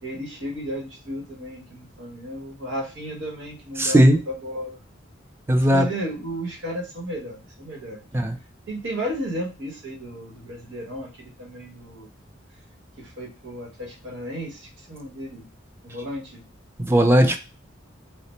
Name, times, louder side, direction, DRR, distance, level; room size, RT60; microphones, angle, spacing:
voice 1, 0.0-4.8 5.6-8.1 8.7-12.1 13.0-15.4 15.8-16.4, equal, 70° right, -2 dB, 1.1 m, -33 dB
voice 2, 3.8-4.2 5.5-5.9 8.1-8.4 16.8-17.4, equal, 15° right, 6 dB, 0.4 m, -17 dB
3.2 x 2.0 x 4.2 m, 0.32 s
head